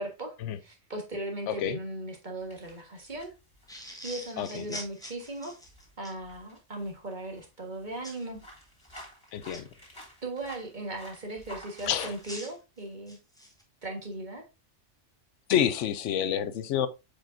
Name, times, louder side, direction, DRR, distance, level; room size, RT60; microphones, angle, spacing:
voice 1, 0.0-3.3 4.0-5.6 6.0-8.4 9.8-13.2 13.8-14.5, right 1 dB, 40° right, 1.7 m, -38 dB
voice 2, 1.5-1.8 4.4-4.8 9.3-9.7 11.9-12.1 15.5-16.9, left 9 dB, 80° left, 0.9 m, -28 dB
sound 1, 2.4-7.5 7.8-12.4, equal, 20° left, 3.1 m, -51 dB
sound 2, 3.7-6.2 8.0-8.3 8.8-9.6 11.7-13.6, equal, 5° left, 1.3 m, -44 dB
7.5 x 5.0 x 2.6 m
omnidirectional pair, 1.3 m